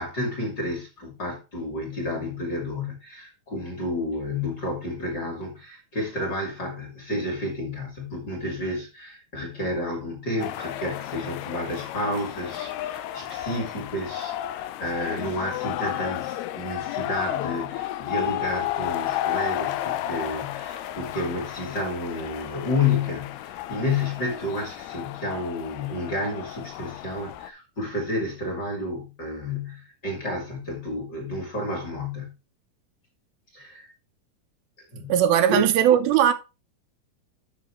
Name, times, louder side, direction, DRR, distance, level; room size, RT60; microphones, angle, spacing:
voice 1, 0.0-32.3 33.5-33.9 34.9-35.1 35.5-35.6, left 2 dB, 30° left, 2.3 m, -30 dB
sound 1, 10.4-27.5, left 13 dB, 85° left, 2.7 m, -32 dB
voice 2, 35.1-36.3, right 10 dB, 80° right, 2.6 m, -19 dB
10.5 x 6.0 x 3.1 m
omnidirectional pair, 4.4 m